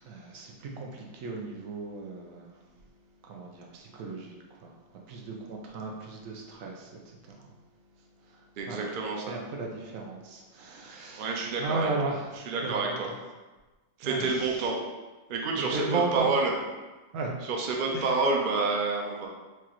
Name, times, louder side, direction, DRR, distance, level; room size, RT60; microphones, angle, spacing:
voice 1, 0.0-2.6 3.2-7.5 8.2-8.9 9.3-13.0 14.0-14.7 15.6-16.3 17.1-17.3 17.9-18.2, right 3 dB, 65° right, 0 dB, 1.0 m, -36 dB
voice 2, 8.6-9.3 11.1-11.9 12.5-13.1 14.0-14.8 15.3-16.5 17.4-19.3, right 3 dB, 85° right, 0 dB, 0.4 m, -28 dB
4.7 x 2.4 x 3.0 m, 1.2 s
omnidirectional pair, 1.6 m